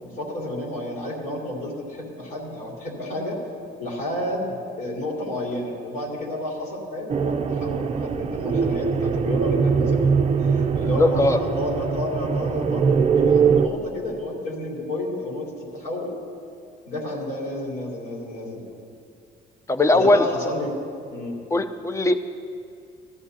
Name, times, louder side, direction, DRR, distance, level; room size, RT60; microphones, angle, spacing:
voice 1, 0.0-3.4 3.8-10.1 10.5-16.1 16.8-18.6 19.9-20.8 21.1-21.3, left 1 dB, 65° left, -4 dB, 3.3 m, -31 dB
sound 1, 7.1-13.7, right 6 dB, 35° right, 0.5 m, -22 dB
voice 2, 11.0-11.4 19.7-20.2 21.5-22.2, left 2 dB, 15° left, 9 dB, 0.6 m, -19 dB
16.5 x 13.5 x 2.8 m, 2.4 s
cardioid pair, 110°, 17 cm